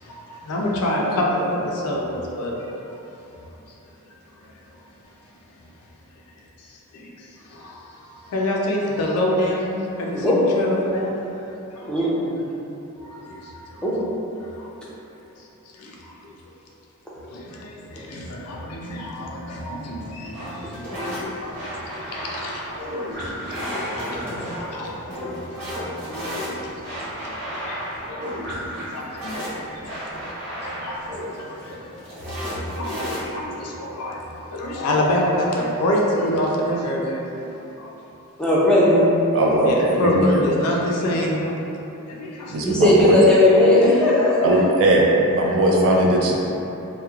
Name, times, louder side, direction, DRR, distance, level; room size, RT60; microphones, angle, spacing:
voice 1, 0.0-3.8 4.4-5.7 6.6-11.9 13.2-13.9 14.4-14.7 15.4-15.5 15.7-16.4 17.3-38.0 39.6-41.8 42.1-42.7 45.4-45.5, left 1 dB, 80° left, -2 dB, 0.4 m, -28 dB
sound 1, 20.3-33.5, equal, 30° right, 1.1 m, -32 dB
voice 2, 38.4-39.0 42.6-44.5, left 1 dB, 5° left, -8 dB, 0.4 m, -16 dB
voice 3, 39.3-40.2 42.5-43.2 44.4-45.1 45.3-46.3, right 1 dB, 65° right, -2 dB, 0.4 m, -19 dB
2.9 x 2.1 x 2.3 m, 3.0 s
head